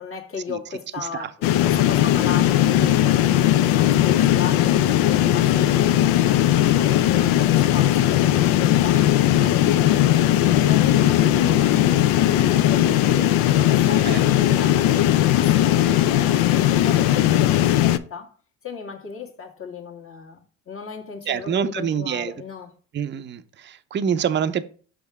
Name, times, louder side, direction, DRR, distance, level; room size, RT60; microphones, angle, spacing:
voice 1, 0.0-1.3 1.6-6.2 6.6-9.1 9.4-10.1 10.5-11.7 12.4-18.3 18.6-22.8, left 6 dB, 35° left, 1.6 m, -35 dB
My room and its noisy fan, 1.4-18.0, left 12 dB, 70° left, 0.5 m, -18 dB
voice 2, 21.3-22.3 22.9-24.6, right 8 dB, 30° right, 0.6 m, -26 dB
5.9 x 3.5 x 4.7 m
hypercardioid pair, 60°, 37 cm